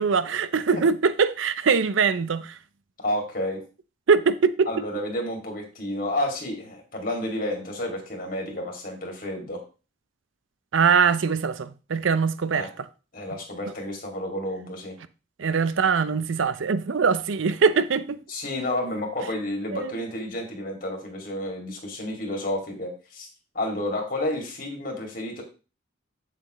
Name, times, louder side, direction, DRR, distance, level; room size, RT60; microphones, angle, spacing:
voice 1, 0.0-2.5 4.1-4.7 10.7-12.9 15.4-18.2 19.7-19.9, right 5 dB, 80° right, 0.5 m, -22 dB
voice 2, 3.0-3.6 4.7-9.6 12.5-12.7 13.1-14.9 18.3-23.3 23.5-25.4, left 1 dB, 45° left, 2.3 m, -30 dB
7.8 x 7.2 x 3.1 m
head